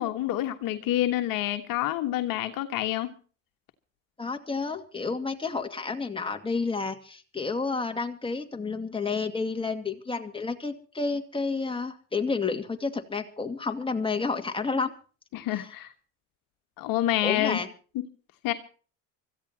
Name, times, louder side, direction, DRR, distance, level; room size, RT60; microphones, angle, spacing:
voice 1, 0.0-3.1 15.3-15.9 16.8-17.6 17.9-18.0 18.4-18.5, left 13 dB, 60° left, 1.5 m, -27 dB
voice 2, 4.2-14.9 15.5-15.7 17.2-17.7, left 4 dB, 15° left, 2.4 m, -30 dB
25.5 x 14.5 x 2.9 m
hypercardioid pair, 70°, 38 cm